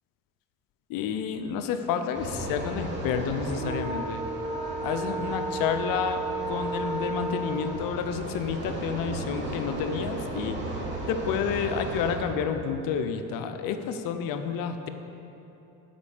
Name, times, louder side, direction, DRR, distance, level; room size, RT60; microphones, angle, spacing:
voice 1, 0.9-4.2 4.8-10.6 11.1-14.9, left 7 dB, 70° left, 8 dB, 0.7 m, -30 dB
sound 1, 2.1-12.1, right 2 dB, 30° right, 2.3 m, -33 dB
10.5 x 4.2 x 7.3 m, 2.9 s
supercardioid pair, 95°, 35 cm